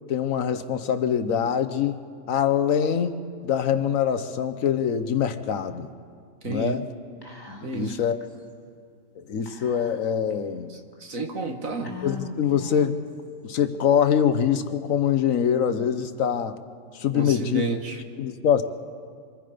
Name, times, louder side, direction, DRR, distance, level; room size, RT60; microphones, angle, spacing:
voice 1, 0.1-2.0 2.3-5.9 6.4-6.9 7.5-8.2 9.2-10.8 12.0-13.0 13.4-16.6 16.9-17.6 18.2-18.6, left 8 dB, 80° left, 10 dB, 1.3 m, -24 dB
voice 2, 6.4-6.8 7.6-7.9 11.0-11.9 17.1-18.0, right 3 dB, 85° right, 4 dB, 2.1 m, -30 dB
Whispering, 7.2-7.9 8.2-8.3 9.5-10.3 10.9-11.0 11.8-13.0, left 2 dB, 15° left, 1.9 m, -40 dB
26.0 x 25.5 x 5.1 m, 2.3 s
omnidirectional pair, 1.4 m